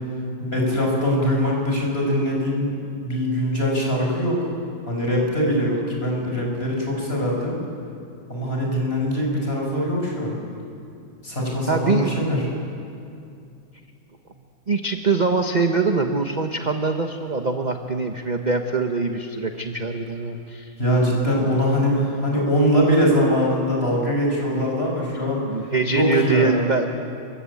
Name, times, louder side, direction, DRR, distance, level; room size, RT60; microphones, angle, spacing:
voice 1, 0.4-4.4 4.9-7.5 8.3-10.3 11.2-12.4 20.8-25.4 25.9-26.7, equal, 30° left, -1 dB, 6.5 m, -22 dB
voice 2, 11.7-12.2 14.7-20.7 25.4-26.9, right 4 dB, 30° right, 5 dB, 1.1 m, -23 dB
29.0 x 24.0 x 8.6 m, 2.5 s
omnidirectional pair, 2.1 m